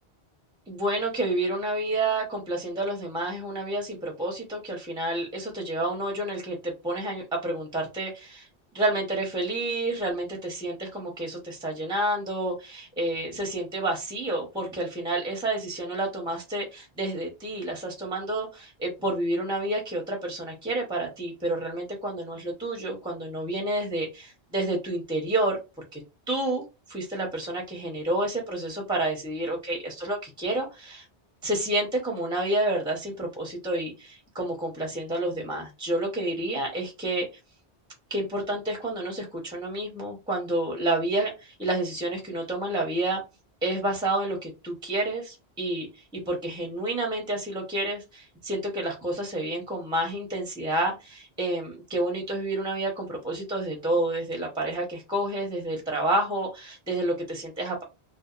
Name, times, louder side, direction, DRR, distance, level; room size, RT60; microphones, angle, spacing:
voice 1, 0.7-8.5 8.7-25.6 25.9-26.0 26.3-26.6 26.9-31.0 31.4-37.3 38.1-43.2 43.6-45.9 46.1-57.8, right 1 dB, 5° right, 1 dB, 0.5 m, -29 dB
2.7 x 2.1 x 2.3 m, 0.26 s
omnidirectional pair, 1.1 m